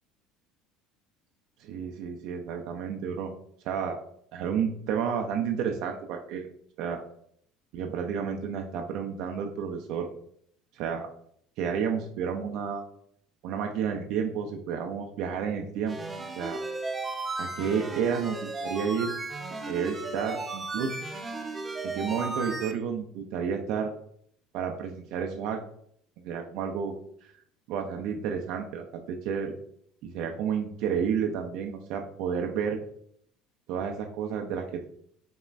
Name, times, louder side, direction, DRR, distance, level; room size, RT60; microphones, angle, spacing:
voice 1, 1.6-3.3 3.6-4.0 4.3-6.5 6.8-7.0 7.7-10.1 10.7-11.1 11.6-12.8 13.4-16.0 16.3-16.6 17.4-19.1 19.7-21.0 21.8-23.9 24.5-25.6 26.2-26.9 27.7-29.5 30.0-32.8 33.7-34.8, right 7 dB, 70° right, 3 dB, 0.4 m, -31 dB
sound 1, 15.9-22.7, right 3 dB, 20° right, 0.6 m, -35 dB
5.4 x 2.1 x 2.4 m, 0.65 s
supercardioid pair, 95°, 0 cm